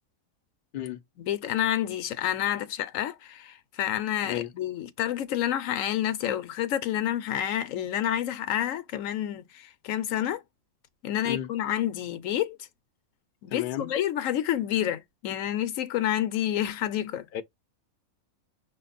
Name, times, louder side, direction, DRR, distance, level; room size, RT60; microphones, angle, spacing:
voice 1, 1.2-10.4 11.0-12.6 13.4-17.3, left 11 dB, 75° left, 1.0 m, -29 dB
voice 2, 13.5-13.9 17.3-17.4, left 11 dB, 55° left, 0.6 m, -33 dB
5.6 x 2.0 x 4.0 m
omnidirectional pair, 1.4 m